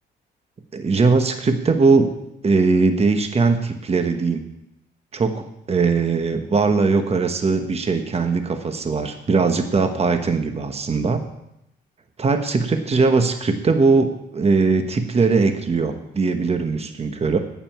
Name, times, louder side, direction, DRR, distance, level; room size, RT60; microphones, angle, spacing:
voice 1, 0.7-2.1 2.4-4.4 5.1-11.2 12.2-17.4, right 4 dB, 30° right, 7 dB, 1.1 m, -20 dB
9.2 x 6.7 x 8.6 m, 0.84 s
cardioid pair, 85°, 19 cm